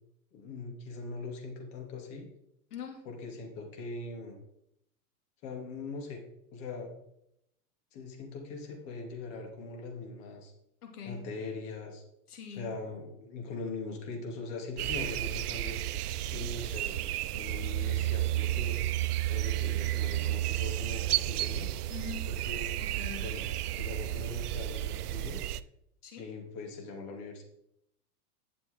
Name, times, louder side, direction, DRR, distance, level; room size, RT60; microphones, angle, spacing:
voice 1, 0.3-2.3 3.0-4.4 5.4-6.2 6.5-6.9 7.9-10.5 11.1-12.0 12.5-15.8 16.3-17.0 17.3-18.8 19.3-21.7 22.2-22.7 23.2-23.4 23.7-25.4 26.2-27.4, left 3 dB, 50° left, 1 dB, 3.2 m, -41 dB
voice 2, 2.7-3.0 10.8-11.2 12.3-12.7 21.9-22.3 22.8-23.3 26.0-26.3, left 6 dB, 85° left, 3 dB, 2.9 m, -43 dB
sound 1, 14.8-25.6, right 14 dB, 80° right, 0.6 m, -32 dB
11.5 x 7.5 x 3.9 m, 0.79 s
hypercardioid pair, 120°, 45 cm